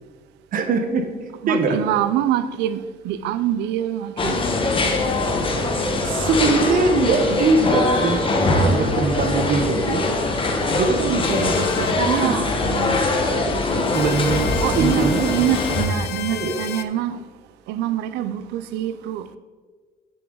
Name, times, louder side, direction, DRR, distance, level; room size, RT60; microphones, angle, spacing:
voice 1, 0.5-1.1 1.5-1.8 6.0-10.1 10.7-12.4 13.4-13.5 13.9-15.5 16.3-16.6, right 3 dB, 55° right, 1.2 m, -22 dB
voice 2, 1.4-4.4 8.5-8.8 12.0-13.4 13.7-13.9 14.6-17.2 17.7-19.3, right 11 dB, 85° right, 0.6 m, -25 dB
sound 1, 4.2-15.8, left 2 dB, 30° left, 1.2 m, -22 dB
sound 2, 11.2-12.0 13.9-16.8, left 12 dB, 75° left, 0.5 m, -32 dB
10.0 x 6.9 x 3.9 m
cardioid pair, 110°, 17 cm